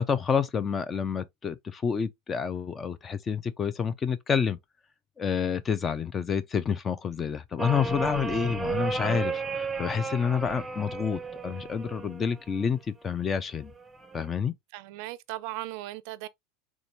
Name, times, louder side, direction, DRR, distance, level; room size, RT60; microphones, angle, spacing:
voice 1, 0.0-4.6 5.2-13.7 14.1-14.5, left 6 dB, 30° left, 0.4 m, -29 dB
sound 1, 7.6-12.6 13.8-14.3, right 4 dB, 15° right, 0.7 m, -33 dB
voice 2, 14.7-16.3, right 17 dB, 65° right, 0.4 m, -37 dB
3.6 x 2.6 x 2.9 m
supercardioid pair, 105°, 0 cm